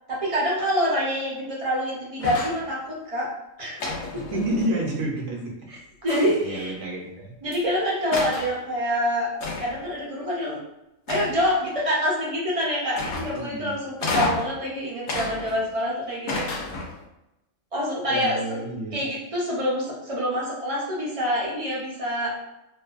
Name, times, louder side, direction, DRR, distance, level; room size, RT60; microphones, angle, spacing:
voice 1, 0.1-3.3 3.6-3.8 4.1-4.2 5.7-6.7 7.4-9.3 9.6-10.6 11.1-16.4 17.7-18.4 18.9-22.3, equal, 40° right, -5 dB, 0.5 m, -26 dB
sound 1, 2.2-2.7 3.8-4.9 6.1-6.6 7.5-7.6 8.1-8.5 9.4-9.9 11.1-11.6 12.9-13.5 14.0-14.6 15.1-15.8 16.3-17.0, left 3 dB, 65° left, 0.8 m, -30 dB
voice 2, 4.1-5.6 6.4-7.3 13.3-13.7 14.1-14.2 18.1-19.0, right 1 dB, 70° right, -1 dB, 0.9 m, -29 dB
2.5 x 2.2 x 2.3 m, 0.90 s
omnidirectional pair, 1.4 m